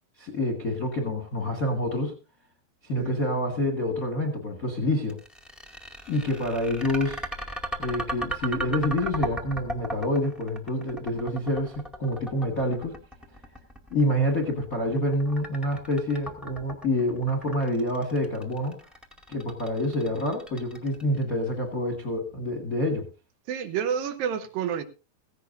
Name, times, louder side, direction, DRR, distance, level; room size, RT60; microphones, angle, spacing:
voice 1, 0.2-2.1 2.8-5.2 6.1-7.2 7.8-12.9 13.9-18.8 19.3-23.1, left 1 dB, 40° left, 4 dB, 1.3 m, -27 dB
sound 1, 5.1-21.2, right 1 dB, ahead, 0.7 m, -36 dB
voice 2, 23.5-24.8, right 8 dB, 75° right, 9 dB, 2.6 m, -29 dB
16.5 x 16.0 x 2.6 m, 0.30 s
omnidirectional pair, 4.3 m